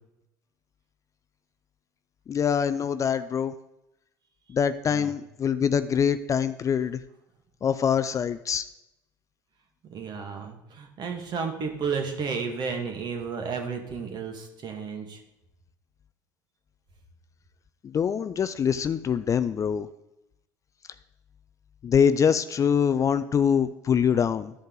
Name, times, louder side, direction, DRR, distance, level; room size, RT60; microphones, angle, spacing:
voice 1, 2.3-3.5 4.5-7.0 7.6-8.7 17.8-19.9 21.8-24.5, left 7 dB, 35° left, 12 dB, 0.4 m, -24 dB
voice 2, 9.8-15.2, right 5 dB, 45° right, 3 dB, 1.8 m, -32 dB
12.5 x 5.3 x 3.9 m, 0.89 s
hypercardioid pair, 75°, 10 cm